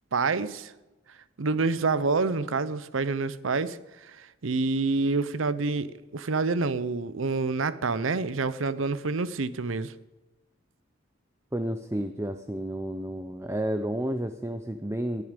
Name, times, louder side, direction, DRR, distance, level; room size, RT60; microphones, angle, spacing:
voice 1, 0.1-0.7 1.4-3.8 4.1-9.9, right 3 dB, 90° right, 16 dB, 0.7 m, -27 dB
voice 2, 11.5-15.2, right 1 dB, 15° right, 8 dB, 0.6 m, -31 dB
19.5 x 11.0 x 5.2 m, 1.1 s
head